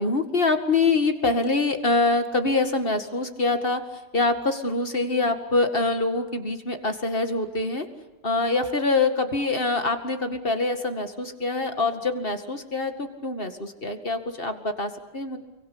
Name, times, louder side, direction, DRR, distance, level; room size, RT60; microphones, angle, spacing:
voice 1, 0.0-3.8 4.1-7.9 8.2-15.4, left 3 dB, 30° left, 7 dB, 2.2 m, -25 dB
29.5 x 23.5 x 8.6 m, 1.1 s
omnidirectional pair, 2.1 m